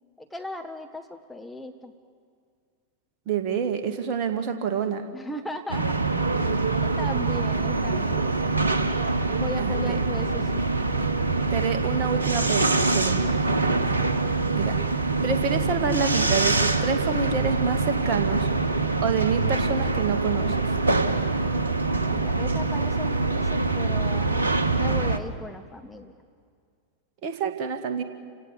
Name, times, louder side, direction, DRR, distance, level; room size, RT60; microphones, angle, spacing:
voice 1, 0.2-1.9 5.1-6.0 6.8-8.4 9.4-10.7 22.1-24.5 24.8-26.1, left 1 dB, 5° left, 3 dB, 1.4 m, -37 dB
voice 2, 3.3-5.1 9.6-10.0 11.5-13.4 14.5-14.8 15.2-18.5 19.0-20.6 27.2-28.0, right 6 dB, 40° right, 6 dB, 2.2 m, -27 dB
sound 1, 5.7-25.2, right 3 dB, 75° right, 1.2 m, -24 dB
30.0 x 17.5 x 8.5 m, 2.1 s
figure-of-eight pair, 90°, 0 cm